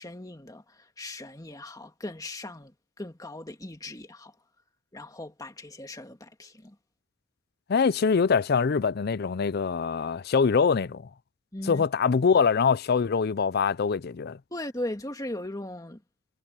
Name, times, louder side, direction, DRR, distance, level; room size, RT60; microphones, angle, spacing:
voice 1, 0.0-4.4 4.9-6.8 11.5-11.8 14.5-16.0, left 1 dB, 15° left, 1.9 m, -38 dB
voice 2, 7.7-11.1 11.7-14.4, left 5 dB, 50° left, 0.4 m, -24 dB
head